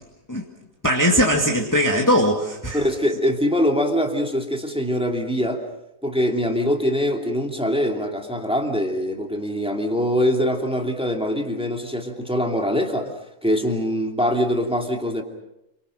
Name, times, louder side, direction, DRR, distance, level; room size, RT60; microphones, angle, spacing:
voice 1, 0.8-2.8, equal, 10° left, 0 dB, 2.2 m, -20 dB
voice 2, 2.7-5.6 6.0-13.1 13.4-15.2, equal, 5° right, 3 dB, 2.7 m, -23 dB
28.5 x 25.0 x 6.5 m, 0.87 s
omnidirectional pair, 1.6 m